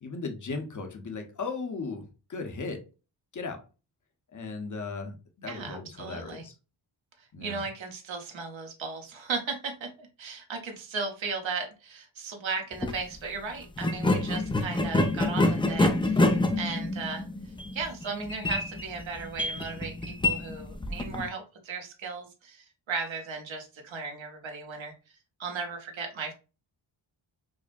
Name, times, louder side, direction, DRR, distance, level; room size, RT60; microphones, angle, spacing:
voice 1, 0.0-2.8 3.3-3.6 4.3-6.5 7.3-7.6, left 4 dB, 40° left, 6 dB, 0.8 m, -37 dB
voice 2, 5.5-6.4 7.2-17.3 17.7-24.9 25.4-26.3, right 4 dB, 70° right, 4 dB, 1.0 m, -36 dB
sound 1, 12.7-13.0 13.8-21.3, left 2 dB, 10° left, 0.3 m, -27 dB
4.8 x 2.1 x 2.5 m, 0.31 s
wide cardioid pair, 90°, 47 cm